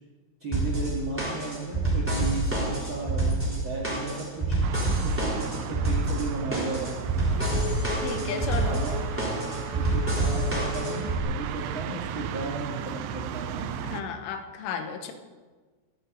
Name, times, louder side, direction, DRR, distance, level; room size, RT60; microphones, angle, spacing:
voice 1, 0.4-4.6 5.0-7.0 8.2-8.9 9.7-13.7, right 2 dB, 60° right, -1 dB, 1.2 m, -35 dB
sound 1, 0.5-11.2, right 2 dB, 5° right, 3.1 m, -27 dB
sound 2, 4.6-14.0, right 9 dB, 80° right, 3.0 m, -35 dB
Race car auto racing / Accelerating revving vroom, 6.7-12.0, left 6 dB, 65° left, 2.7 m, -38 dB
voice 2, 8.0-8.8 13.8-15.1, left 6 dB, 85° left, 7 dB, 3.7 m, -33 dB
14.5 x 8.5 x 8.5 m, 1.4 s
omnidirectional pair, 5.5 m